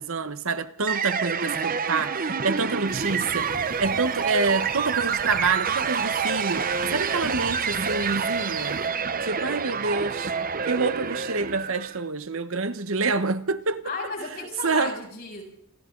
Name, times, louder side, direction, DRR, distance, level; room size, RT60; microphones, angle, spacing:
voice 1, 0.0-8.8 9.2-10.4 10.7-13.8 14.6-15.0, right 4 dB, 65° right, 1.1 m, -27 dB
sound 1, 0.9-12.0, right 6 dB, 40° right, 0.9 m, -27 dB
sound 2, 2.9-8.9, left 1 dB, 20° left, 0.8 m, -45 dB
voice 2, 13.8-15.4, left 3 dB, 45° left, 7.8 m, -34 dB
28.5 x 25.5 x 3.9 m
head